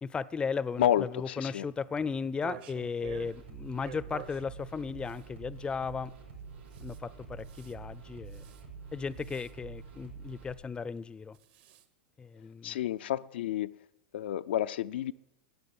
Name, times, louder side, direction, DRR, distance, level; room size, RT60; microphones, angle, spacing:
voice 1, 0.0-6.1 6.8-8.4 8.9-11.4 12.2-12.8, left 5 dB, 15° left, 0.5 m, -36 dB
voice 2, 0.8-1.7 12.6-13.7 14.1-15.1, left 11 dB, 70° left, 0.4 m, -30 dB
sound 1, 2.2-3.3 3.8-4.4 5.1-5.2 6.7-7.0 7.4-7.7 8.3-8.6 9.2-9.5 11.3-11.9, right 11 dB, 55° right, 1.4 m, -47 dB
sound 2, 3.0-10.5, right 5 dB, 85° right, 5.6 m, -47 dB
15.0 x 9.3 x 7.6 m
hypercardioid pair, 100°, 6 cm